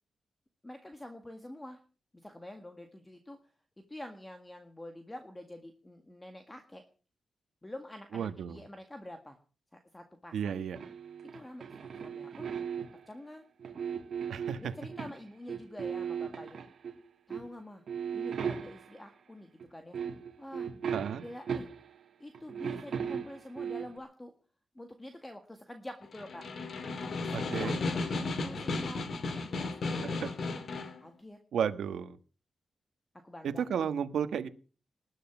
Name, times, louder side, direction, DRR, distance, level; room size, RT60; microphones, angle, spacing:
voice 1, 0.6-1.8 2.1-3.4 3.9-6.8 7.6-9.4 9.7-10.6 11.3-12.5 13.1-13.4 14.6-16.6 17.3-17.8 18.1-20.0 20.4-20.7 21.2-21.7 22.2-24.3 24.7-26.4 27.0-27.7 28.1-30.7 30.9-31.4 33.2-33.6, left 1 dB, 10° left, 6 dB, 1.7 m, -47 dB
voice 2, 8.1-8.6 10.3-10.8 14.3-14.7 20.9-21.2 27.3-27.8 30.0-30.3 31.5-32.2 33.4-34.5, right 8 dB, 85° right, 11 dB, 1.4 m, -33 dB
sound 1, 10.8-13.1 13.6-15.2 15.5-17.0 17.3-17.5 17.9-19.1 19.6-19.7 19.9-22.0 22.3-24.0, right 7 dB, 60° right, 2.5 m, -37 dB
Snare drum, 26.0-31.0, left 3 dB, 50° left, 2.3 m, -34 dB
20.0 x 11.5 x 6.1 m, 0.40 s
wide cardioid pair, 150°, 0 cm